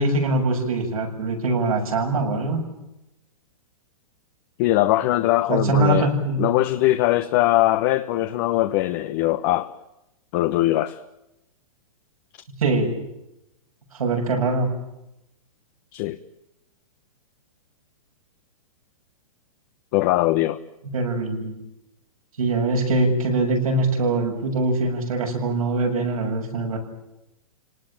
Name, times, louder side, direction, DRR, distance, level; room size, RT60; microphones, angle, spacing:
voice 1, 0.0-2.6 5.5-6.4 12.6-12.9 13.9-14.7 20.9-21.6 22.4-26.8, right 2 dB, 90° right, 7.4 m, -22 dB
voice 2, 4.6-6.1 6.4-9.7 10.3-11.0 15.9-16.2 19.9-20.6, left 16 dB, 40° left, 1.1 m, -21 dB
30.0 x 19.0 x 9.1 m
hypercardioid pair, 145°, 18 cm